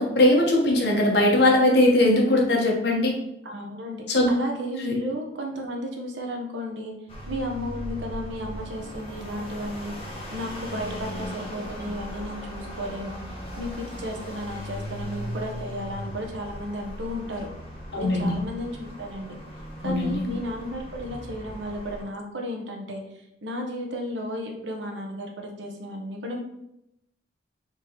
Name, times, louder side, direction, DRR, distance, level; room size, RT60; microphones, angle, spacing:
voice 1, 0.0-3.1 4.1-4.3 4.8-4.9 17.9-18.4 19.8-20.2, left 1 dB, 65° left, -1 dB, 1.1 m, -20 dB
voice 2, 3.4-6.9 7.3-9.9 10.3-13.2 13.6-17.5 18.0-19.3 19.8-23.0 23.4-26.4, equal, 85° right, 1 dB, 0.9 m, -33 dB
sound 1, 7.1-22.0, equal, 30° left, 1.2 m, -38 dB
4.6 x 3.7 x 3.0 m, 0.82 s
head